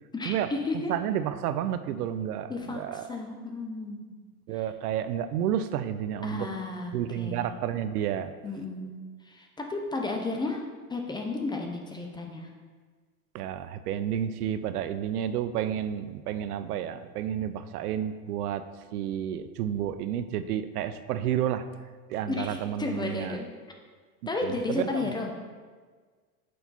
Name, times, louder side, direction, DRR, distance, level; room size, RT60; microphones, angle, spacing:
voice 1, 0.1-1.0 2.5-4.1 6.2-7.5 8.4-9.0 9.3-10.6 10.9-12.5 22.3-23.5 24.3-25.3, left 3 dB, 10° left, 2 dB, 0.5 m, -33 dB
voice 2, 0.9-3.1 4.5-6.5 6.9-8.3 13.3-18.6 18.9-21.7 22.1-23.4 24.4-25.1, right 10 dB, 80° right, 12 dB, 0.5 m, -31 dB
6.4 x 4.4 x 4.1 m, 1.5 s
hypercardioid pair, 110°, 45 cm